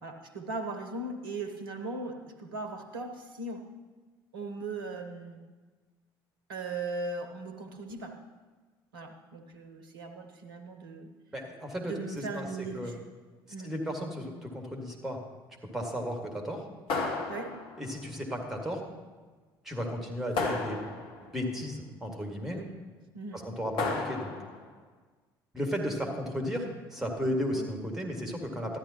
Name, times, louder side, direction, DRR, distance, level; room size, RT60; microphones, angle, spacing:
voice 1, 0.0-3.6 4.3-5.4 6.5-8.2 8.9-11.1 11.8-13.0 13.5-13.7 17.3-17.6 22.5-22.7 23.1-23.4 27.5-27.7, right 3 dB, 70° right, 6 dB, 1.0 m, -38 dB
voice 2, 11.3-11.9 12.3-12.4 12.7-12.9 13.6-15.2 15.7-16.6 17.8-18.8 19.6-20.8 21.3-22.6 23.4-24.3 25.5-28.8, equal, 5° right, 2 dB, 2.0 m, -34 dB
sound 1, 16.9-18.0 20.4-21.3 23.8-24.6, left 3 dB, 50° left, 1.5 m, -33 dB
13.5 x 10.5 x 2.9 m, 1.3 s
figure-of-eight pair, 55°, 12 cm